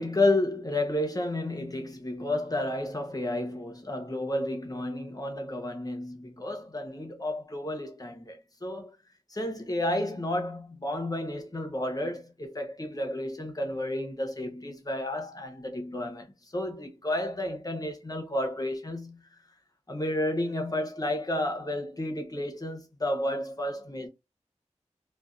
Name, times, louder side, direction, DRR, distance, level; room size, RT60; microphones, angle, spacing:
voice 1, 0.0-8.9 9.3-19.4 19.9-24.1, left 1 dB, 30° left, 0.8 m, -31 dB
2.4 x 2.4 x 2.3 m
wide cardioid pair, 75°, 12 cm